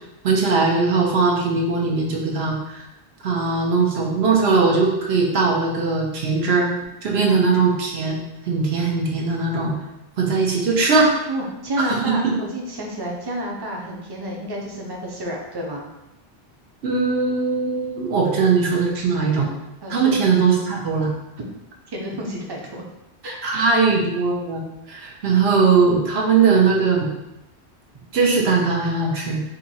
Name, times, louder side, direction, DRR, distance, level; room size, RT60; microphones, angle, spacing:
voice 1, 0.2-2.8 3.2-6.7 7.0-8.2 8.5-9.7 10.2-11.1 12.1-12.2 16.8-19.5 19.9-21.1 23.4-27.1 28.1-29.4, right 4 dB, 80° right, -1 dB, 1.0 m, -20 dB
voice 2, 11.2-15.9 19.8-20.2 21.9-22.8 23.2-23.9, right 1 dB, 30° right, -1 dB, 0.5 m, -30 dB
2.8 x 2.7 x 4.1 m, 0.92 s
omnidirectional pair, 1.1 m